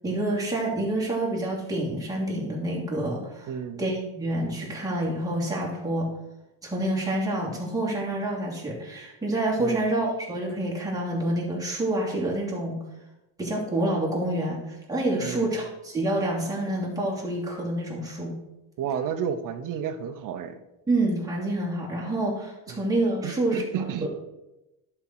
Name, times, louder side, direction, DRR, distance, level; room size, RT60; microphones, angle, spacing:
voice 1, 0.0-3.5 3.8-6.1 6.6-12.8 13.4-14.6 14.9-18.3 20.9-23.6 24.0-24.1, right 1 dB, 10° right, -5 dB, 2.8 m, -27 dB
voice 2, 3.5-3.8 9.6-9.9 15.2-15.6 18.8-20.6 22.7-22.9 23.2-24.1, right 8 dB, 50° right, 10 dB, 1.0 m, -31 dB
11.0 x 4.6 x 6.2 m, 0.96 s
cardioid pair, 150°, 41 cm